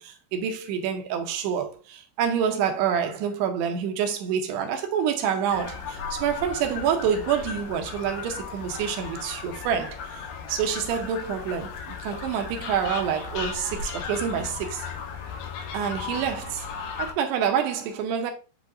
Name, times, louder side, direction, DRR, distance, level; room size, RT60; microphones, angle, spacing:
voice 1, 0.0-14.9 15.7-16.7 17.0-18.3, right 8 dB, 85° right, 2.7 m, -27 dB
sound 1, 5.5-17.1, left 6 dB, 75° left, 2.3 m, -36 dB
8.0 x 2.8 x 2.4 m
omnidirectional pair, 4.9 m